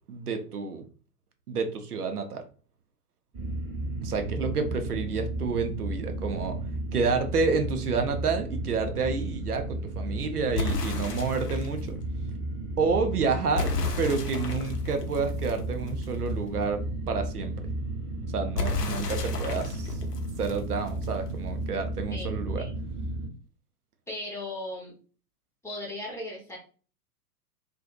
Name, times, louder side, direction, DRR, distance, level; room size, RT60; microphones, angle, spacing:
voice 1, 0.1-0.8 1.5-2.4 4.0-6.6 6.9-12.0 12.8-13.7 14.0-17.5 18.3-20.0 20.4-22.7, right 4 dB, 75° right, 6 dB, 0.6 m, -29 dB
sound 1, 3.3-23.3, right 2 dB, 15° right, 1.0 m, -33 dB
sound 2, 10.5-11.8 13.5-16.3 18.5-21.3, left 3 dB, 85° left, 0.6 m, -33 dB
voice 2, 22.1-22.7 24.1-24.9 25.6-26.6, left 1 dB, 5° left, -4 dB, 0.8 m, -37 dB
2.5 x 2.4 x 2.3 m, 0.38 s
figure-of-eight pair, 100°, 46 cm